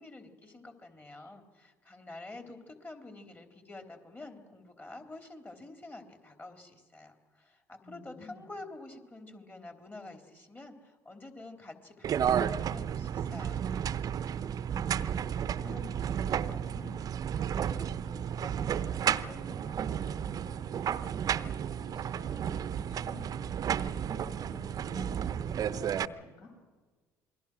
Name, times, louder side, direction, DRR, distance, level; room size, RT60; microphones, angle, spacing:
voice 1, 0.0-13.7, left 2 dB, 20° left, 5 dB, 3.7 m, -48 dB
voice 2, 7.8-8.5 14.7-26.5, left 2 dB, 55° left, 0 dB, 7.5 m, -51 dB
sound 1, 12.0-26.1, right 9 dB, 45° right, 0.8 m, -32 dB
27.5 x 22.0 x 6.3 m, 1.4 s
hypercardioid pair, 65°, 8 cm